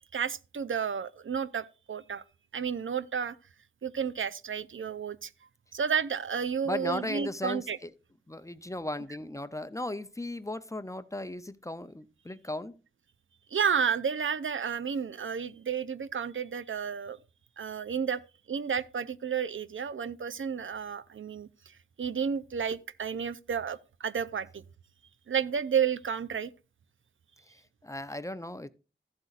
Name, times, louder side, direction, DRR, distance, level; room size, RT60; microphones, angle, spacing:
voice 1, 0.1-2.2 2.5-3.4 3.8-5.3 5.7-7.8 13.5-17.2 17.6-18.2 18.5-24.6 25.3-26.5, right 7 dB, 70° right, 0.5 m, -31 dB
voice 2, 6.6-7.9 8.3-12.8 27.5-28.7, left 1 dB, 15° left, 0.5 m, -37 dB
14.5 x 7.9 x 2.5 m
wide cardioid pair, 80°, 21 cm